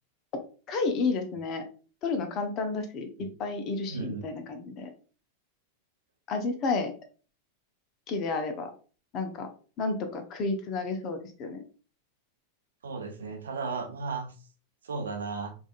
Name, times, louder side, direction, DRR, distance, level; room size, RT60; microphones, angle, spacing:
voice 1, 0.7-1.6 2.0-4.9 6.3-6.9 8.1-8.7 9.1-9.5 9.8-11.6, left 3 dB, 35° left, 6 dB, 0.7 m, -31 dB
voice 2, 3.9-4.3 12.8-14.3 14.8-15.5, right 4 dB, 65° right, 5 dB, 0.7 m, -34 dB
4.9 x 2.6 x 2.4 m, 0.38 s
figure-of-eight pair, 90°, 0 cm